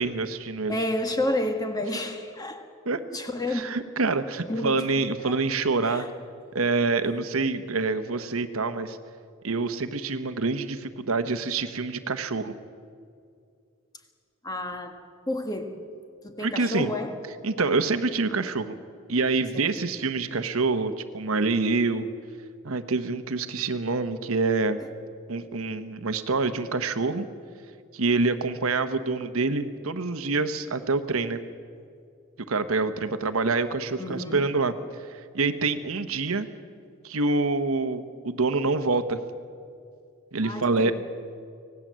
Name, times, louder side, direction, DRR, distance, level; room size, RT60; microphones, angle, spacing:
voice 1, 0.0-0.8 2.8-3.0 3.5-6.1 6.5-9.0 9.4-12.5 16.4-16.9 17.4-18.8 19.1-22.1 22.6-24.8 25.3-27.3 27.9-31.4 32.5-34.7 35.1-36.5 37.0-39.2 40.3-40.9, right 3 dB, 80° right, 1.1 m, -26 dB
voice 2, 0.7-2.6 3.1-3.6 4.5-4.9 5.2-5.3 5.8-6.1 14.4-15.8 16.2-17.2 19.5-19.6 34.0-34.5 40.4-40.9, left 1 dB, 20° left, 1.6 m, -30 dB
25.0 x 18.0 x 7.6 m
head